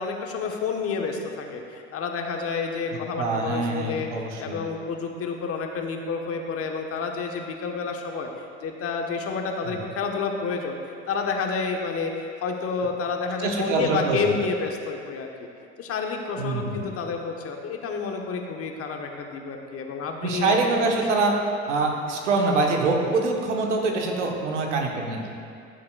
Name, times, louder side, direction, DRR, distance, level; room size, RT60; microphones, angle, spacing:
voice 1, 0.0-4.1 4.4-8.3 8.6-10.8 11.1-15.5 15.8-20.6, left 5 dB, 40° left, 3 dB, 1.1 m, -29 dB
voice 2, 3.2-4.6 9.6-9.8 13.4-14.3 16.4-16.8 20.2-21.4 21.7-25.3, right 3 dB, 80° right, 1 dB, 1.2 m, -24 dB
15.5 x 7.5 x 2.3 m, 2.4 s
hypercardioid pair, 70°, 35 cm